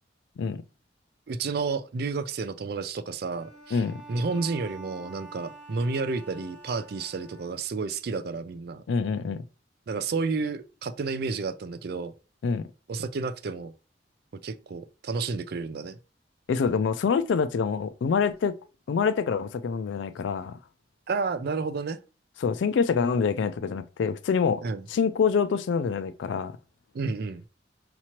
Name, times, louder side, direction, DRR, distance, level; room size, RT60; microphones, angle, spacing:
voice 1, 1.3-3.8 4.1-8.8 9.9-12.1 12.9-13.7 14.4-16.0 21.1-22.0 24.6-24.8 26.9-27.4, right 4 dB, 55° right, 0.4 m, -31 dB
Bowed string instrument, 3.3-7.9, right 2 dB, 25° right, 1.7 m, -47 dB
voice 2, 3.7-4.0 8.9-9.4 12.4-12.6 16.5-18.5 18.9-20.6 22.4-24.6 24.9-26.5, left 6 dB, 80° left, 0.3 m, -26 dB
5.9 x 2.9 x 2.9 m
head